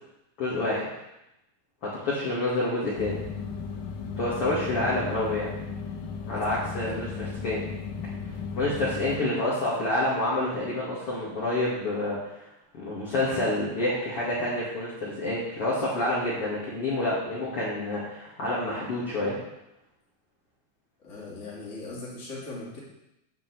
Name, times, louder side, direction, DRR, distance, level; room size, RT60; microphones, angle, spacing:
voice 1, 0.4-0.9 1.8-3.2 4.2-5.5 6.3-7.1 7.4-7.7 8.6-12.3 12.7-19.4, left 1 dB, 40° left, -8 dB, 2.5 m, -28 dB
sound 1, 3.0-9.2, left 5 dB, 85° left, 1.8 m, -35 dB
voice 2, 6.3-7.1 21.0-22.8, left 2 dB, 20° left, -6 dB, 2.6 m, -40 dB
9.5 x 5.3 x 8.0 m, 0.88 s
omnidirectional pair, 5.3 m